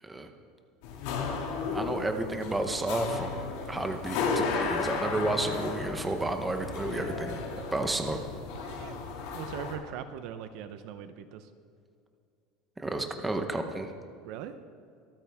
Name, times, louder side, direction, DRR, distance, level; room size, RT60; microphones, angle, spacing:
sound 1, 0.8-9.8, left 4 dB, 65° left, 2.3 m, -34 dB
voice 1, 1.7-7.4 7.7-8.2 12.8-13.9, right 2 dB, 10° right, 5 dB, 0.8 m, -31 dB
voice 2, 8.6-8.9 9.3-11.5 14.2-14.5, right 9 dB, 50° right, 10 dB, 0.7 m, -40 dB
24.5 x 9.0 x 3.5 m, 2.4 s
cardioid pair, 175°, 0 cm